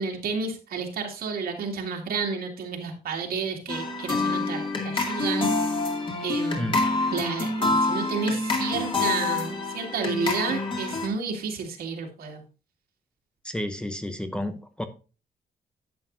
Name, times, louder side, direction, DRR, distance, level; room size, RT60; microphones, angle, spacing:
voice 1, 0.0-5.5 6.2-6.8 7.1-12.4, right 5 dB, 70° right, 2 dB, 2.3 m, -31 dB
sound 1, 3.7-11.1, left 3 dB, 30° left, 2.4 m, -27 dB
voice 2, 13.4-14.8, left 1 dB, 5° left, 8 dB, 0.7 m, -31 dB
11.5 x 8.1 x 2.6 m, 0.33 s
wide cardioid pair, 155°, 16 cm